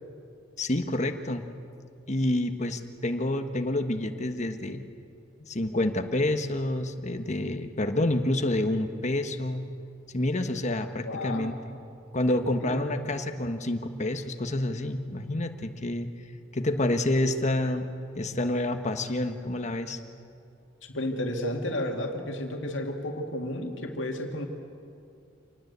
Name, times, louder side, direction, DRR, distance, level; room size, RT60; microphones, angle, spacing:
voice 1, 0.6-1.4 2.1-4.8 5.5-9.7 10.1-11.8 12.1-16.1 16.5-17.9 18.1-20.0, left 1 dB, 40° left, 7 dB, 1.3 m, -28 dB
voice 2, 11.0-11.6 12.3-12.8 20.9-24.5, left 1 dB, 70° left, 3 dB, 2.3 m, -32 dB
26.5 x 19.0 x 8.1 m, 2.5 s
head